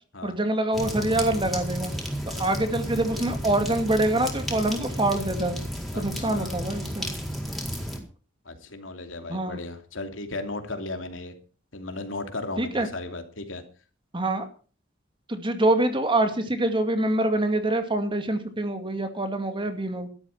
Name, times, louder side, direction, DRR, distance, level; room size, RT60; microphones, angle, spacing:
voice 1, 0.2-1.9 2.4-5.6 6.0-7.1 9.3-9.6 12.6-12.9 14.1-14.5 15.3-20.1, right 1 dB, 25° right, 7 dB, 2.3 m, -25 dB
sound 1, 0.7-8.0, equal, ahead, 4.6 m, -32 dB
voice 2, 5.9-6.5 8.4-11.4 11.7-13.6, left 2 dB, 80° left, 6 dB, 2.8 m, -36 dB
13.0 x 12.5 x 6.0 m, 0.39 s
head